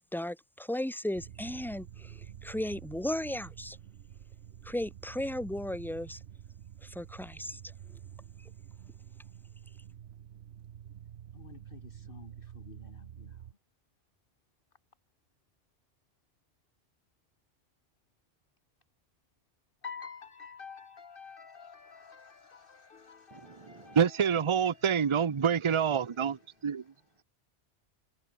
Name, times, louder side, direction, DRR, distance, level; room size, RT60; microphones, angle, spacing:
voice 1, 0.1-3.8 4.6-6.2 6.8-7.6, left 1 dB, ahead, 0.7 m, -35 dB
sound 1, 1.1-13.5, right 10 dB, 65° right, 1.0 m, -49 dB
voice 2, 11.3-13.5 19.8-25.5 26.0-27.2, left 6 dB, 50° left, 1.6 m, -50 dB
voice 3, 23.9-26.8, right 7 dB, 30° right, 0.6 m, -27 dB
omnidirectional pair, 1.2 m